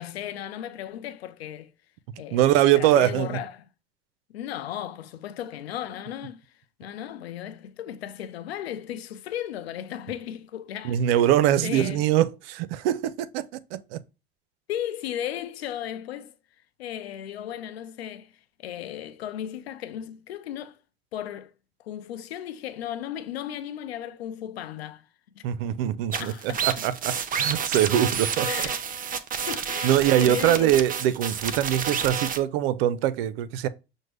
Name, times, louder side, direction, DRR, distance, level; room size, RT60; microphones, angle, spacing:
voice 1, 0.0-1.7 2.2-2.4 2.8-3.6 4.3-6.4 6.8-11.0 11.6-12.0 14.7-16.3 16.8-18.3 18.6-20.8 21.1-21.5 21.8-25.1 25.4-25.5 26.1-26.7 28.5-28.9 29.5-30.8, left 11 dB, 90° left, 0.5 m, -35 dB
voice 2, 2.3-3.4 10.8-14.0 25.4-28.5 29.8-33.7, right 12 dB, 70° right, 0.5 m, -23 dB
sound 1, 26.1-32.4, right 7 dB, 30° right, 0.6 m, -29 dB
6.2 x 2.1 x 3.2 m
hypercardioid pair, 75°, 30 cm